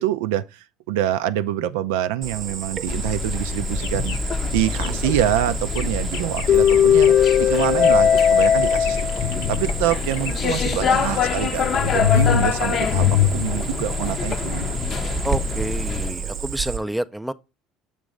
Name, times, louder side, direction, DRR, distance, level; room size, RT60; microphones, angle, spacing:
voice 1, 0.0-4.2 4.5-13.1 13.3-14.8, right 12 dB, 90° right, 0.4 m, -26 dB
Cricket, 2.2-16.8, right 6 dB, 45° right, 0.7 m, -32 dB
sound 1, 2.9-16.1, left 8 dB, 45° left, 0.6 m, -21 dB
sound 2, 3.6-13.1, left 9 dB, 85° left, 0.8 m, -39 dB
voice 2, 15.2-17.3, right 1 dB, 5° right, 0.4 m, -28 dB
6.6 x 3.0 x 4.9 m
supercardioid pair, 100°, 0 cm